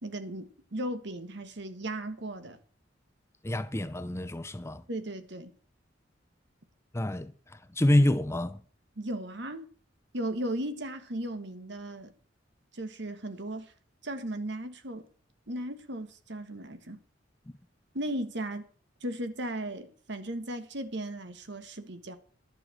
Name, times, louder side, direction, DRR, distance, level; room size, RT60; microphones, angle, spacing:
voice 1, 0.0-2.6 4.9-5.5 9.0-9.6 10.1-12.1 12.7-13.7 14.0-15.0 15.5-17.0 17.9-18.7 19.0-22.2, right 1 dB, 65° right, 1.6 m, -36 dB
voice 2, 3.4-4.8 6.9-8.6, left 1 dB, 15° left, 0.6 m, -27 dB
11.5 x 6.7 x 7.6 m
head